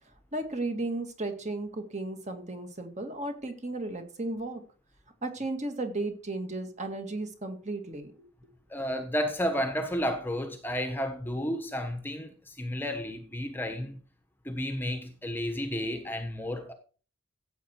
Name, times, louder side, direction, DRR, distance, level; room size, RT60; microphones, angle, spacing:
voice 1, 0.3-4.6 5.2-8.1, right 2 dB, 35° right, 2.2 m, -34 dB
voice 2, 8.7-14.0 14.4-16.7, equal, 10° left, 1.1 m, -32 dB
15.0 x 8.1 x 4.6 m
head